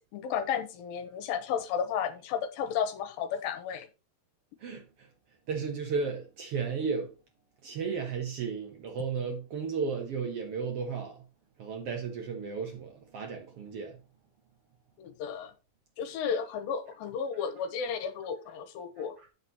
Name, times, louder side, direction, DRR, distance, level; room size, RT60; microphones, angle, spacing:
voice 1, 0.0-3.9 15.0-15.5 16.0-19.1, left 7 dB, 75° left, 2.7 m, -33 dB
voice 2, 4.6-5.1 5.5-7.1 7.6-11.2 11.6-14.0 19.0-19.1, right 5 dB, 80° right, 1.3 m, -34 dB
8.0 x 6.2 x 4.1 m
omnidirectional pair, 4.4 m